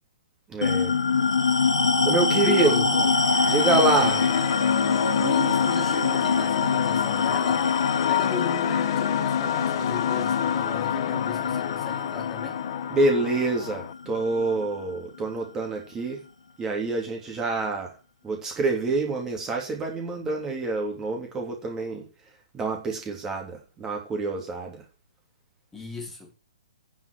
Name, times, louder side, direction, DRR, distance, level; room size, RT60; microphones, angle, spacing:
voice 1, 0.5-0.9 2.0-2.8 3.5-4.2 12.9-16.2 16.6-17.9 18.2-22.1 22.5-24.8, right 3 dB, 15° right, 3.2 m, -26 dB
sound 1, 0.6-15.4, left 4 dB, 70° left, 2.7 m, -25 dB
voice 2, 2.3-3.1 3.7-4.3 5.2-7.6 8.1-12.6 25.7-26.3, left 3 dB, 10° left, 3.2 m, -36 dB
sound 2, 2.9-13.9, left 14 dB, 40° left, 0.7 m, -29 dB
9.5 x 7.3 x 6.3 m
figure-of-eight pair, 120°, 3 cm